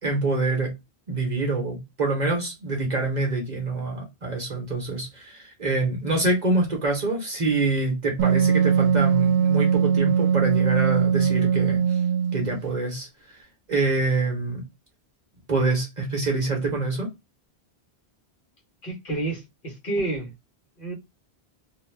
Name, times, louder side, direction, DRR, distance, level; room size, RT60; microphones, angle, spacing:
voice 1, 0.0-0.7 1.1-12.0 12.3-13.4 13.7-14.6 15.5-17.1, right 3 dB, 45° right, 0.9 m, -26 dB
Wind instrument woodwind instrument, 8.2-12.6, right 7 dB, 85° right, 0.9 m, -21 dB
voice 2, 18.8-20.3 20.8-20.9, right 2 dB, 55° left, 1.1 m, -29 dB
2.5 x 2.2 x 3.1 m
omnidirectional pair, 1.1 m